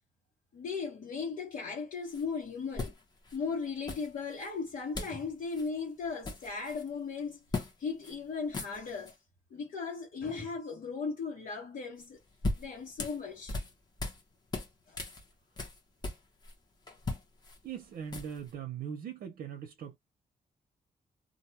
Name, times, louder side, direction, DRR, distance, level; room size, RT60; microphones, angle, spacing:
voice 1, 0.5-2.9 3.3-7.4 7.8-9.2 9.5-12.2 12.6-13.6 14.9-15.0, left 5 dB, 70° left, 1.2 m, -37 dB
sound 1, 2.1-2.2 2.8-3.4 3.9-4.5 4.9-5.2 5.5-5.7 6.0-6.9 7.5-7.7 8.0-8.2 8.4-9.1 12.0-14.2 14.5-16.5 16.9-18.5, left 3 dB, 30° left, 0.9 m, -38 dB
voice 2, 17.6-20.0, right 8 dB, 75° right, 0.7 m, -40 dB
2.6 x 2.2 x 2.8 m
wide cardioid pair, 165°, 15 cm